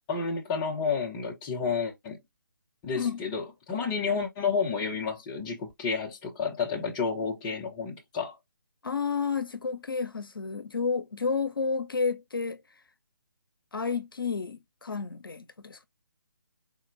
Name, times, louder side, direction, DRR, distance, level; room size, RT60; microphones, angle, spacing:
voice 1, 0.1-2.2 2.8-8.4, left 5 dB, 15° left, 0.5 m, -30 dB
voice 2, 8.8-12.6 13.7-15.9, left 5 dB, 80° left, 0.5 m, -31 dB
3.9 x 2.1 x 2.5 m
figure-of-eight pair, 145°, 12 cm